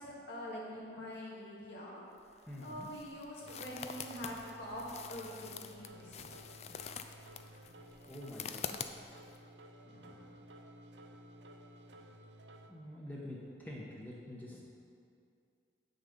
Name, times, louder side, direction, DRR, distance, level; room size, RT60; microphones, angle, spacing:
voice 1, 0.0-2.0 2.6-6.4 9.8-10.3, equal, 70° left, -5 dB, 1.9 m, -45 dB
sound 1, 2.2-9.4, left 7 dB, 35° left, 0.3 m, -46 dB
voice 2, 2.5-2.9 4.3-4.4 6.7-6.8 8.1-9.2 12.7-14.7, left 1 dB, 10° left, -4 dB, 1.0 m, -47 dB
sound 2, 3.4-12.7, right 1 dB, 85° right, 0.7 m, -55 dB
8.8 x 6.6 x 5.2 m, 2.4 s
head